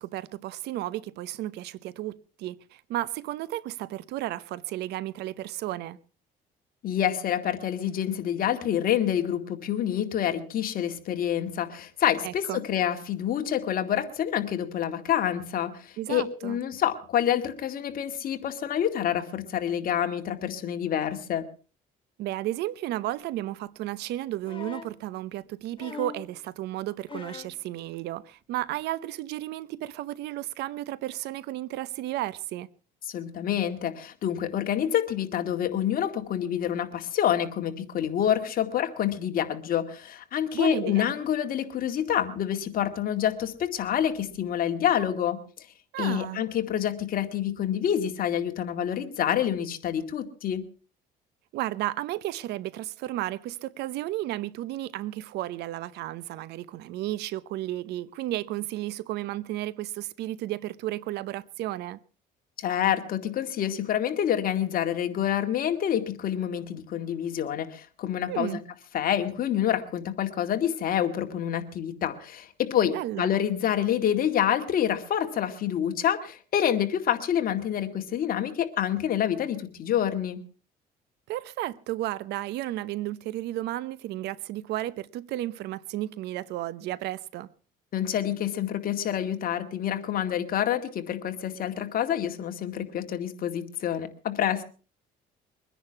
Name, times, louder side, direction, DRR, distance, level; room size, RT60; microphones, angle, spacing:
voice 1, 0.0-6.0 12.2-12.6 16.0-16.6 22.2-32.7 40.5-41.1 45.9-46.4 51.5-62.0 68.3-68.6 72.9-73.3 81.3-87.5, right 15 dB, 80° right, 0.8 m, -33 dB
voice 2, 6.8-21.4 33.1-45.4 46.0-50.6 62.6-68.6 68.9-80.4 87.9-94.6, left 10 dB, 60° left, 2.2 m, -27 dB
sound 1, 24.4-25.0 25.8-26.3 27.1-27.6 28.8-28.9, left 6 dB, 30° left, 1.2 m, -41 dB
23.0 x 10.0 x 5.8 m
cardioid pair, 110°, 17 cm